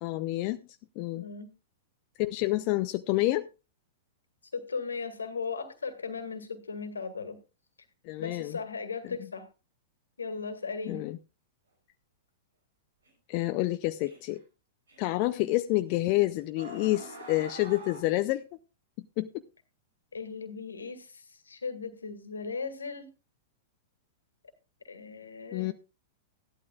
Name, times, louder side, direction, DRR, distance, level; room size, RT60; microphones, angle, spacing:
voice 1, 0.0-0.6 1.0-1.2 2.2-3.5 8.0-8.6 9.0-9.2 10.8-11.2 13.3-14.4 15.0-18.4 19.2-19.3 25.5-25.7, left 18 dB, 45° left, 9 dB, 0.6 m, -28 dB
voice 2, 1.1-1.5 4.5-7.4 8.2-9.5 10.2-11.0 20.1-23.1 24.8-25.7, left 5 dB, 80° left, 10 dB, 2.0 m, -37 dB
sound 1, 13.1-13.2 14.1-14.4 14.9-15.0 16.1-16.2 16.6-18.0, right 1 dB, 80° right, 5.1 m, -44 dB
16.0 x 12.0 x 2.4 m, 0.30 s
figure-of-eight pair, 105°, 0 cm